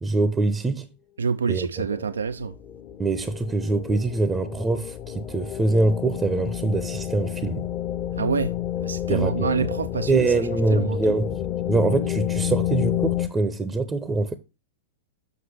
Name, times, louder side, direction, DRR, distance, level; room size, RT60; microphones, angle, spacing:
voice 1, 0.0-0.9 1.5-1.9 3.0-7.6 9.1-9.5 10.1-11.4 11.7-14.4, right 3 dB, 15° right, 0.6 m, -24 dB
voice 2, 1.2-2.5 8.1-8.5 8.8-10.3 10.7-11.2, right 5 dB, 75° right, 0.3 m, -27 dB
sound 1, 2.0-13.3, left 12 dB, 30° left, 0.7 m, -30 dB
7.2 x 5.7 x 3.2 m
figure-of-eight pair, 105°, 0 cm